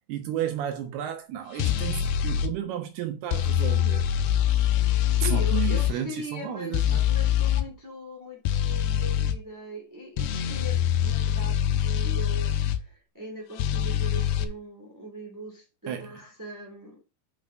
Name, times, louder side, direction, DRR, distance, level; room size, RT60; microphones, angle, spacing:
voice 1, 0.0-4.0 5.1-7.1 15.9-16.1, right 10 dB, 75° right, 2.7 m, -33 dB
sound 1, 1.6-2.5 3.3-5.9 6.7-7.7 8.5-9.4 10.2-12.8 13.6-14.5, left 10 dB, 85° left, 2.9 m, -24 dB
voice 2, 5.1-17.0, equal, 10° right, 1.3 m, -40 dB
8.5 x 4.8 x 5.1 m
omnidirectional pair, 4.8 m